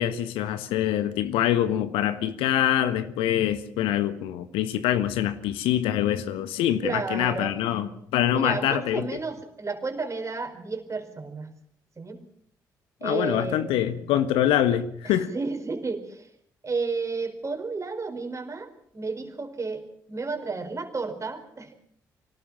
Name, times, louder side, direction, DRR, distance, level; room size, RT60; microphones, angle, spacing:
voice 1, 0.0-9.1 13.0-15.3, left 11 dB, 65° left, 13 dB, 1.4 m, -25 dB
voice 2, 6.8-7.5 8.3-11.5 12.0-12.2 13.0-13.7 15.0-16.3 16.6-21.7, right 4 dB, 30° right, 7 dB, 4.6 m, -32 dB
25.5 x 18.5 x 7.4 m, 0.67 s
figure-of-eight pair, 40°, 10 cm